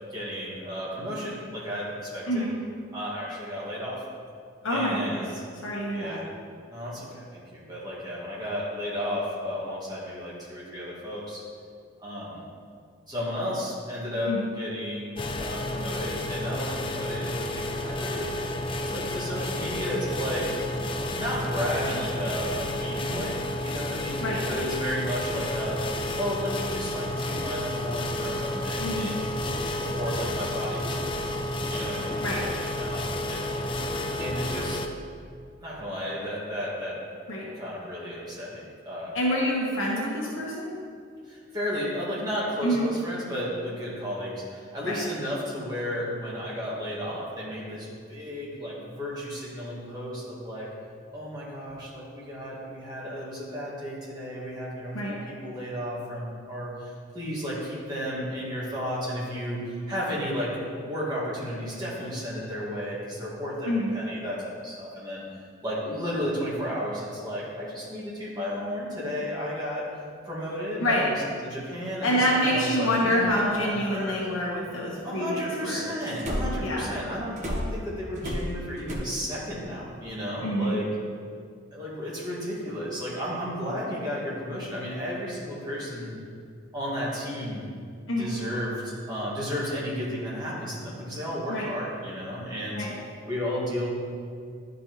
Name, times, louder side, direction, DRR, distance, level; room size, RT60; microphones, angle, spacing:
voice 1, 0.1-2.5 2.9-4.0 4.7-5.4 5.9-6.3 6.7-11.4 12.0-12.4 13.1-18.3 18.8-20.5 21.1-29.3 29.7-31.4 31.7-33.6 34.2-34.8 35.6-37.0 37.5-39.7 41.3-50.7 51.1-65.2 65.6-71.1 71.4-74.2 75.0-80.9 81.7-86.1 86.7-87.6 88.2-92.9 93.3-93.9, equal, 20° right, -7 dB, 1.8 m, -33 dB
voice 2, 4.6-5.2 5.6-6.2 14.3-14.4 24.2-24.5 28.8-29.1 32.2-32.4 37.3-37.5 39.1-40.7 42.6-42.9 44.8-45.0 54.9-55.2 63.6-63.9 70.8-71.1 72.0-76.0 76.6-76.9 80.4-80.8 88.1-88.3 91.5-91.7 92.8-93.0, equal, 75° left, -4 dB, 1.1 m, -27 dB
sound 1, 15.2-34.9, left 1 dB, 25° left, 0.4 m, -31 dB
sound 2, 76.2-76.7 77.4-79.0, equal, 35° right, 0.9 m, -31 dB
11.0 x 5.2 x 3.1 m, 2.2 s
head